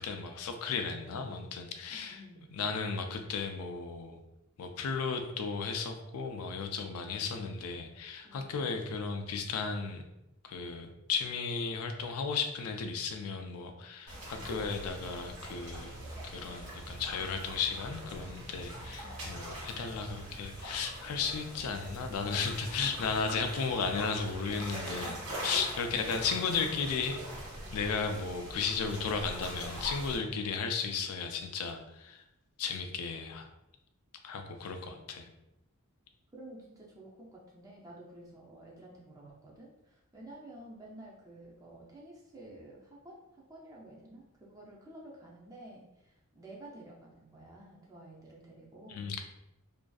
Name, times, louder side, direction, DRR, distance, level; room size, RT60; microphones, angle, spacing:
voice 1, 0.0-2.2 2.5-4.2 4.6-10.0 10.4-16.0 16.2-25.2 25.4-27.2 27.7-32.2 32.6-33.4 34.2-35.3 48.9-49.2, left 5 dB, 85° left, 6 dB, 0.3 m, -35 dB
voice 2, 1.9-2.5 7.0-7.7 8.2-8.8 19.0-19.5 24.9-25.4 25.9-26.2 30.4-31.0 36.3-49.2, right 1 dB, 15° right, -4 dB, 0.4 m, -52 dB
sound 1, 14.1-30.2, right 1 dB, 85° right, 1.0 m, -42 dB
2.5 x 2.3 x 2.2 m, 0.89 s
head